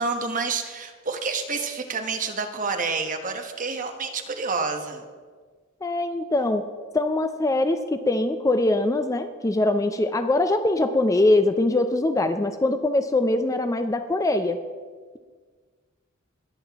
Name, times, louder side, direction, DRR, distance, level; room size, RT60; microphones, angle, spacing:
voice 1, 0.0-5.0, right 4 dB, 40° right, 5 dB, 1.0 m, -28 dB
voice 2, 5.8-6.7 6.9-14.6, left 2 dB, 15° left, 9 dB, 0.4 m, -22 dB
20.0 x 7.6 x 3.5 m, 1.5 s
head